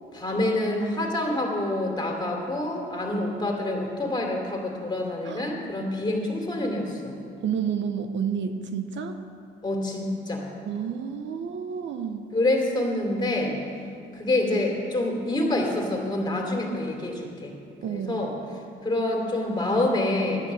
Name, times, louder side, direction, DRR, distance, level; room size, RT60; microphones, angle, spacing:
voice 1, 0.1-7.1 9.6-10.4 12.3-13.6 14.1-17.5 17.9-18.3 18.8-20.5, left 1 dB, 20° left, 0 dB, 2.9 m, -27 dB
voice 2, 7.4-9.2 10.6-12.3 17.8-18.3, right 7 dB, 70° right, 8 dB, 0.9 m, -30 dB
12.0 x 9.4 x 7.5 m, 2.4 s
cardioid pair, 90°, 20 cm